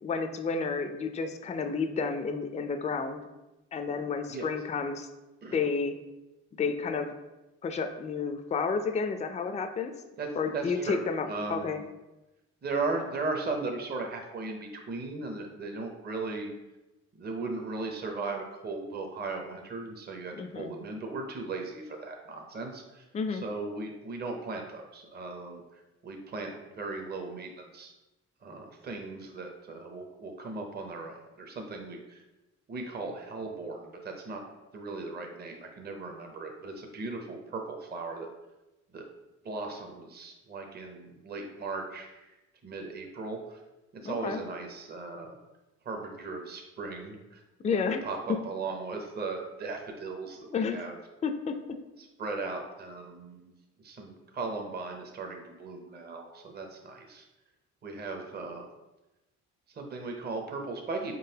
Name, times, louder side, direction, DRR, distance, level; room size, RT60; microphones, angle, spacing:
voice 1, 0.0-3.2 3.7-5.1 5.5-5.9 6.6-7.1 7.6-9.9 10.4-11.8 20.3-20.7 23.1-23.4 44.0-44.4 47.6-48.4 50.5-50.8 51.2-51.8, left 5 dB, 25° left, 7 dB, 0.4 m, -31 dB
voice 2, 10.2-11.8 12.6-16.5 17.1-27.9 28.4-32.2 32.7-34.4 34.7-38.3 38.9-39.0 39.4-42.3 42.6-43.6 44.0-45.4 45.8-47.4 47.7-51.0 52.2-53.5 53.8-57.3 57.8-58.7 59.7-61.1, right 3 dB, 35° right, 3 dB, 0.7 m, -37 dB
4.7 x 3.8 x 2.8 m, 1.0 s
cardioid pair, 90°, 30 cm